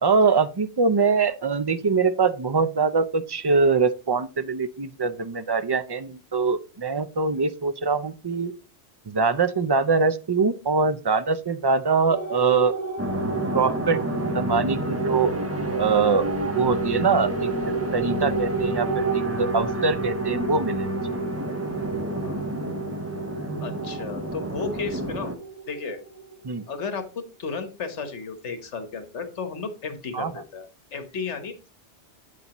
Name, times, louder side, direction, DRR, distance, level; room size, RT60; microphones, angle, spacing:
voice 1, 0.0-8.5 9.1-12.7 13.5-14.0 14.3-15.3 15.8-16.3 16.5-20.9 26.4-26.6 30.1-30.3, right 4 dB, 40° right, 12 dB, 0.3 m, -23 dB
sound 1, 12.1-26.9, right 5 dB, 15° left, 1.6 m, -32 dB
sound 2, 13.0-25.3, equal, 15° right, 0.7 m, -30 dB
voice 2, 23.6-25.3 25.7-26.0 26.7-27.0 27.4-31.7, left 5 dB, 75° left, 9 dB, 1.5 m, -33 dB
8.3 x 8.2 x 3.0 m, 0.31 s
omnidirectional pair, 1.2 m